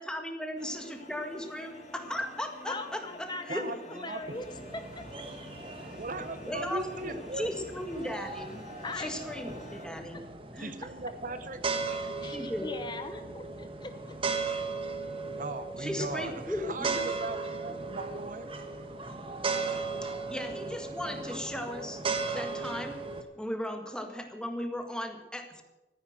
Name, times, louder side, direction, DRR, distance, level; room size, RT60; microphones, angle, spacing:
voice 1, 0.0-3.7 6.5-8.7 9.0-10.3 10.5-10.7 12.3-12.7 15.8-17.0 20.0-22.0 22.3-23.0 23.3-25.6, left 1 dB, 5° left, 5 dB, 1.7 m, -37 dB
sound 1, 0.6-9.9, left 1 dB, 40° left, 2.4 m, -50 dB
voice 2, 2.7-4.5 4.7-5.0 8.8-9.1 10.1-10.2 12.2-14.2, left 3 dB, 25° left, 8 dB, 0.8 m, -40 dB
voice 3, 3.5-4.4 6.0-7.5 10.6-11.7 15.4-18.9, right 2 dB, 50° right, 10 dB, 0.9 m, -39 dB
sound 2, 4.2-23.2, right 4 dB, 30° right, 1.4 m, -37 dB
14.5 x 10.0 x 7.7 m, 1.0 s
head